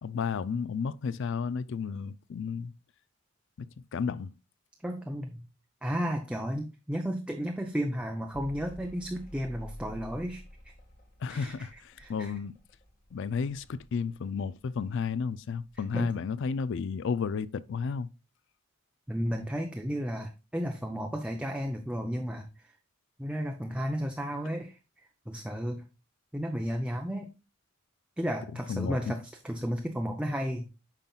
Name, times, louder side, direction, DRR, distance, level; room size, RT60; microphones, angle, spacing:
voice 1, 0.0-2.7 3.6-3.7 3.9-4.3 11.2-12.6 13.1-18.1 28.7-29.1, left 5 dB, 60° left, 0.4 m, -32 dB
voice 2, 4.8-5.5 5.8-10.7 11.3-12.3 15.9-16.2 19.1-22.7 23.2-24.8 25.3-25.8 26.3-27.3 28.2-30.7, equal, 5° right, 0.5 m, -33 dB
Mechanical fan, 8.3-15.2 15.5-16.3, left 1 dB, 40° left, 1.7 m, -50 dB
9.0 x 5.7 x 2.3 m
head